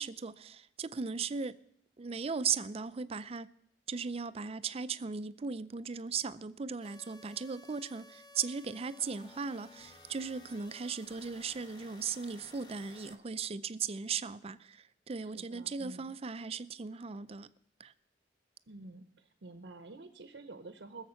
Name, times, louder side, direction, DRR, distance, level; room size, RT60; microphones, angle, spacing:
voice 1, 0.0-1.5 2.0-3.5 3.9-17.5 17.8-17.9, right 5 dB, 35° right, 0.4 m, -37 dB
sound 1, 6.8-13.2, left 2 dB, 25° left, 1.1 m, -56 dB
voice 2, 15.2-16.1 18.7-21.1, right 2 dB, 75° right, 0.8 m, -49 dB
19.5 x 7.3 x 5.8 m
head